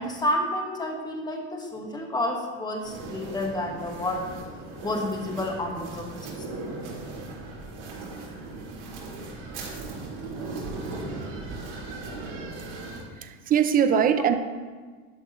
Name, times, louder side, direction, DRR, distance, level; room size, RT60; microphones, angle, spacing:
voice 1, 0.0-4.2 4.8-6.3, left 1 dB, 10° left, 1 dB, 1.5 m, -30 dB
sound 1, 2.8-13.0, right 3 dB, 80° right, 3.6 m, -37 dB
voice 2, 13.2-14.4, right 8 dB, 25° right, 9 dB, 0.6 m, -21 dB
12.0 x 10.5 x 3.1 m, 1.5 s
supercardioid pair, 140°, 35 cm